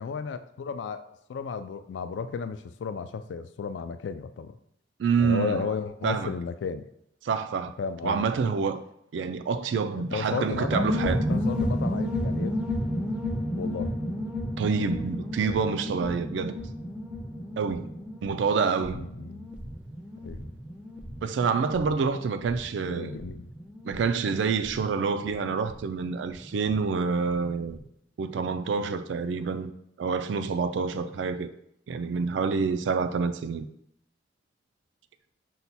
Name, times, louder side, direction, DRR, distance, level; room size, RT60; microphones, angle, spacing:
voice 1, 0.0-4.6 5.2-6.9 7.8-8.5 9.9-12.6 13.5-13.9 18.8-19.5 20.2-20.5 22.8-23.5, left 5 dB, 75° left, 0.3 m, -34 dB
voice 2, 5.0-5.7 6.0-6.3 7.2-7.7 8.0-8.8 9.1-11.2 14.6-16.6 17.6-17.9 18.2-19.0 21.2-23.1 23.8-27.8 28.2-29.7 30.0-31.5 31.9-33.7, right 5 dB, 75° right, 0.3 m, -27 dB
sound 1, 10.5-26.8 27.1-27.2 27.4-27.8, left 1 dB, 5° right, 0.4 m, -32 dB
5.6 x 2.2 x 4.1 m
head